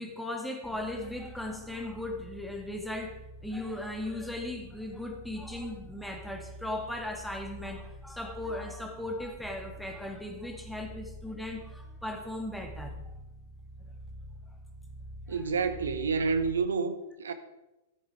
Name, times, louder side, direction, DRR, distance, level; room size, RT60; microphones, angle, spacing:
voice 1, 0.0-3.2 3.4-13.2, left 1 dB, ahead, 2.1 m, -37 dB
sound 1, 0.6-16.8, right 1 dB, 20° right, 0.8 m, -47 dB
voice 2, 15.3-17.3, right 5 dB, 80° right, 1.0 m, -29 dB
14.0 x 9.0 x 4.9 m
hypercardioid pair, 105°, 0 cm